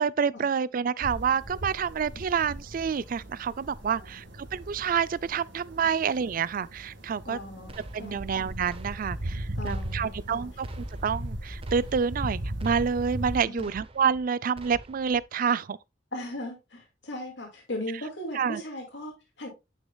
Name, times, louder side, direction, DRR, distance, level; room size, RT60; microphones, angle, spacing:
voice 1, 0.0-7.4 7.9-15.8 18.4-18.6, right 6 dB, 50° right, 0.4 m, -28 dB
sound 1, 1.0-13.4, right 1 dB, 80° right, 1.9 m, -38 dB
voice 2, 7.2-7.7 8.0-8.2 9.6-10.5 13.5-13.8 16.1-19.5, left 1 dB, 70° left, 2.3 m, -38 dB
sound 2, 7.7-8.4 8.7-9.4 9.6-10.3 10.6-11.3 11.6-12.3 12.6-13.3 13.6-14.3 14.6-15.2, right 2 dB, 30° right, 0.8 m, -47 dB
9.4 x 6.2 x 2.3 m
head